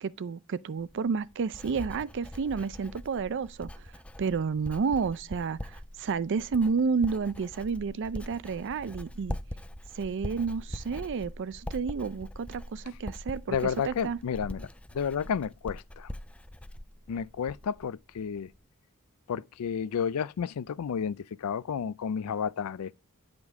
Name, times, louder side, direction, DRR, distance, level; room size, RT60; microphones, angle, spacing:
voice 1, 0.0-3.9 4.2-9.4 9.9-13.6 13.8-14.2, right 5 dB, 55° right, 0.4 m, -31 dB
Writing, 0.8-17.8 18.1-18.6, left 1 dB, 5° left, 0.4 m, -42 dB
voice 2, 13.5-14.7 14.9-16.1 17.1-18.5 19.3-23.0, left 7 dB, 70° left, 0.4 m, -31 dB
9.6 x 5.1 x 3.6 m
head